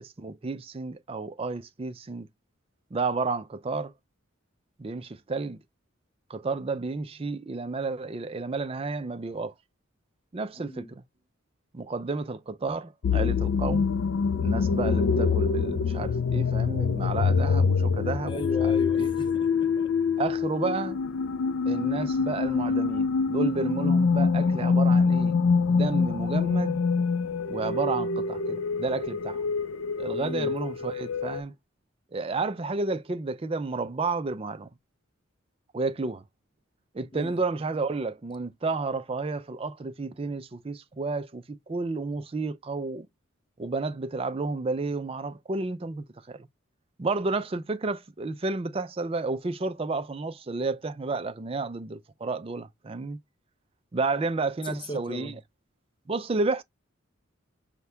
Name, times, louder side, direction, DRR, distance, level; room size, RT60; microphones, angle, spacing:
voice 1, 0.0-2.3 2.9-3.9 4.8-5.6 6.3-9.5 10.3-11.0 11.7-13.9 14.4-18.4 19.0-19.1 20.2-21.0 21.7-25.4 25.7-26.8 27.5-29.4 30.0-31.5 32.1-34.7 35.7-36.2 36.9-43.1 43.6-46.5 47.0-53.2 53.9-55.3 56.1-56.6, right 3 dB, 30° right, 0.4 m, -31 dB
voice 2, 10.6-10.9 18.3-19.9 30.1-30.5 37.1-37.4 54.6-55.4, left 1 dB, 25° left, 0.5 m, -38 dB
sound 1, 13.0-31.4, left 5 dB, 75° left, 0.4 m, -25 dB
5.8 x 2.2 x 3.3 m
head